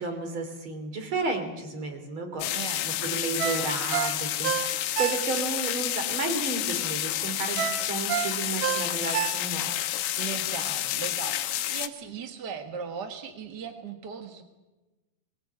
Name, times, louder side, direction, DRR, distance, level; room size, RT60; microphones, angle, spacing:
voice 1, 0.0-10.1, right 3 dB, 35° right, 6 dB, 3.4 m, -33 dB
sound 1, 2.4-11.9, left 13 dB, 90° left, 2.9 m, -30 dB
voice 2, 2.5-2.9 10.2-14.4, right 6 dB, 55° right, 6 dB, 1.2 m, -38 dB
Ringtone, 3.4-5.6 6.0-6.1 7.6-9.8 10.2-10.3, right 10 dB, 85° right, 3.0 m, -30 dB
21.5 x 21.0 x 8.6 m, 1.1 s
omnidirectional pair, 4.3 m